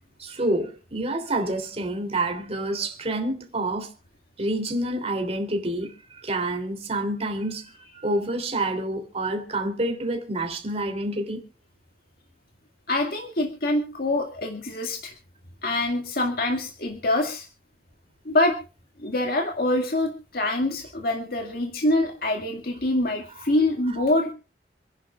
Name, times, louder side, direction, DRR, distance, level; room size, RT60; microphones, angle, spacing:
voice 1, 0.2-3.9 4.4-11.4, right 1 dB, 35° right, 3.1 m, -28 dB
voice 2, 12.9-15.1 15.6-17.5 18.3-18.6 19.0-24.3, left 1 dB, 60° left, 2.1 m, -25 dB
27.5 x 10.5 x 2.4 m
head